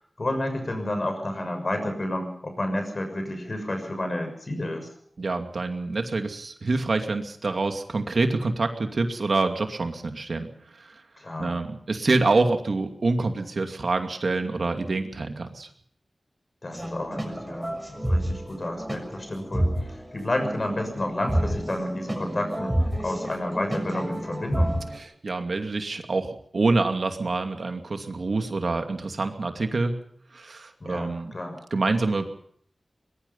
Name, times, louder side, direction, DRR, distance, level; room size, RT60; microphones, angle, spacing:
voice 1, 0.2-4.9 11.2-11.6 16.6-24.8 30.8-31.6, left 1 dB, 45° left, 6 dB, 6.6 m, -30 dB
voice 2, 5.2-10.5 11.4-15.7 25.2-30.0 30.3-31.3 31.7-32.3, right 3 dB, 70° right, 5 dB, 2.6 m, -26 dB
sound 1, 16.7-25.0, right 1 dB, 10° right, 6.7 m, -29 dB
22.5 x 21.5 x 5.7 m, 0.63 s
wide cardioid pair, 80°, 0 cm